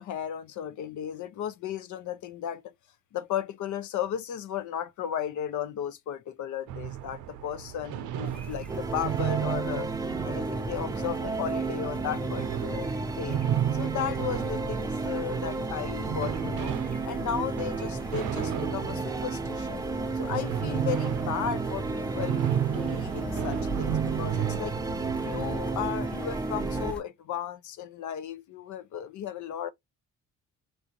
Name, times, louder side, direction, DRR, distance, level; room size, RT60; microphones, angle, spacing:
voice 1, 0.0-2.6 3.1-9.9 10.2-13.4 13.7-16.8 17.1-19.8 20.2-24.8 25.2-29.7, left 9 dB, 75° left, 0.7 m, -35 dB
sound 1, 6.7-25.9, right 10 dB, 90° right, 0.5 m, -34 dB
sound 2, 8.2-27.0, right 2 dB, 5° left, 0.9 m, -42 dB
sound 3, 8.7-26.9, right 3 dB, 10° right, 0.5 m, -33 dB
3.9 x 2.5 x 2.8 m
cardioid pair, 90°, 30 cm